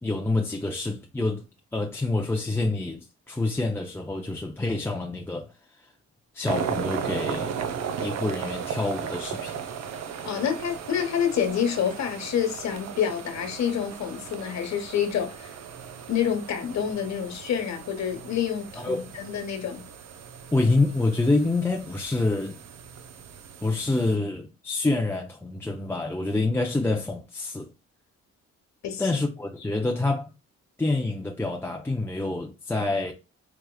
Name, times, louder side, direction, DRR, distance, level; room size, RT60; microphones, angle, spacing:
voice 1, 0.0-1.4 1.7-5.5 5.8-5.9 6.3-7.5 8.0-9.6 18.8-19.1 20.5-22.6 23.6-27.7 29.0-30.3 30.8-33.1, left 2 dB, 10° left, 0.5 m, -27 dB
sound 1, 6.5-24.2, right 7 dB, 60° right, 0.6 m, -36 dB
voice 2, 10.2-15.5 16.1-19.8 28.8-29.1, left 8 dB, 65° left, 1.2 m, -28 dB
4.8 x 2.9 x 2.2 m
cardioid pair, 90°, 30 cm